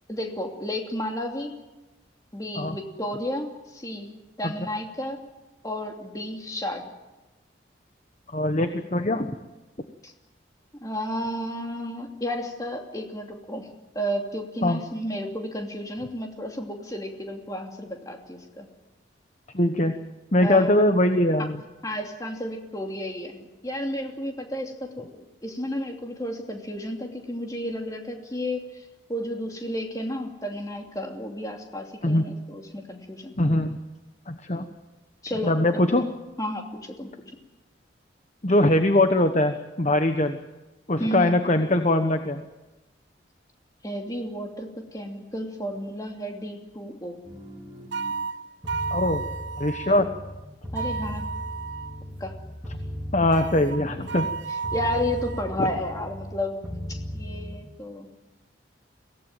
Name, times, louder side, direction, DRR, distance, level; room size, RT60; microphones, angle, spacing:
voice 1, 0.1-1.6 2.3-5.2 5.6-6.8 10.0-10.1 10.8-13.7 13.9-18.7 20.4-20.7 21.8-28.8 29.1-33.4 35.2-35.6 36.4-37.1 41.0-41.3 43.8-47.2 50.7-51.3 52.2-52.3 54.7-56.6 56.9-58.1, equal, 20° left, 2 dB, 2.9 m, -32 dB
voice 2, 8.3-9.3 14.6-14.8 19.5-20.0 20.3-21.6 32.0-32.3 33.4-33.8 34.3-34.6 35.4-36.0 38.4-40.4 40.9-42.4 48.9-49.2 49.6-50.1 53.1-54.3 55.6-55.7, left 1 dB, 35° left, 7 dB, 1.1 m, -22 dB
sound 1, 47.2-48.1 48.6-50.4 50.6-54.4 54.6-56.4 56.6-57.6, equal, 15° right, 4.7 m, -37 dB
sound 2, 47.9-50.0 50.7-52.0 53.3-55.5, right 5 dB, 75° right, 0.7 m, -33 dB
23.5 x 17.5 x 9.1 m, 1.1 s
head